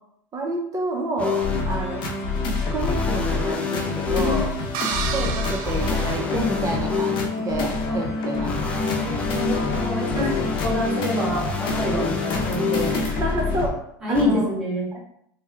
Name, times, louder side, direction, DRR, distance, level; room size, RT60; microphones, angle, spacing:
voice 1, 0.3-2.0 2.4-4.5 4.9-8.5 10.1-10.5 12.9-13.8 14.1-14.5 14.9-15.0, right 1 dB, 30° right, 1 dB, 0.6 m, -29 dB
sound 1, 1.2-1.6 2.8-4.4 5.6-7.3 8.5-13.0 14.2-14.3, left 5 dB, 10° left, 0.5 m, -28 dB
sound 2, 1.4-13.7, left 3 dB, 50° left, 0.7 m, -27 dB
sound 3, 4.7-7.0, right 7 dB, 75° right, 0.4 m, -32 dB
voice 2, 8.8-12.9 14.0-14.9, equal, 5° right, -7 dB, 1.4 m, -26 dB
3.3 x 2.1 x 3.4 m, 0.71 s
supercardioid pair, 125°, 11 cm